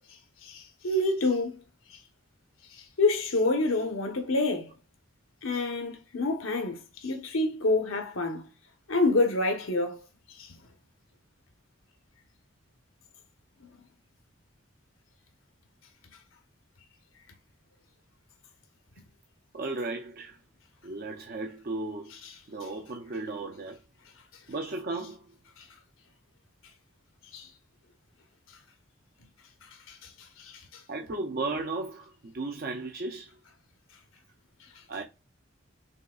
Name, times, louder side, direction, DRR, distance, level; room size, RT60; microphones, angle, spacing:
voice 1, 0.4-1.6 3.0-4.7 5.4-8.5 8.9-10.0 10.4-10.5 22.2-22.3 25.6-25.7 27.3-27.5 29.9-30.1 30.4-30.8, left 2 dB, 80° left, 1.0 m, -27 dB
voice 2, 19.5-20.4 20.8-22.1 22.5-23.8 24.5-25.3 30.9-33.3 34.9-35.0, right 3 dB, 45° right, 0.5 m, -35 dB
5.5 x 3.1 x 2.4 m
head